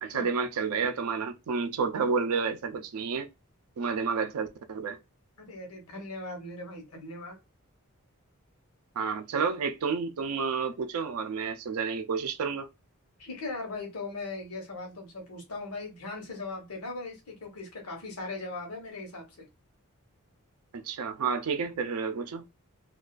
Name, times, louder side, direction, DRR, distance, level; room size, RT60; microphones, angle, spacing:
voice 1, 0.0-3.3 3.8-5.0 9.0-12.7 20.8-22.5, right 5 dB, 75° right, 0.4 m, -30 dB
voice 2, 5.4-7.3 13.2-19.4, left 3 dB, 75° left, 0.9 m, -39 dB
2.4 x 2.3 x 2.2 m
head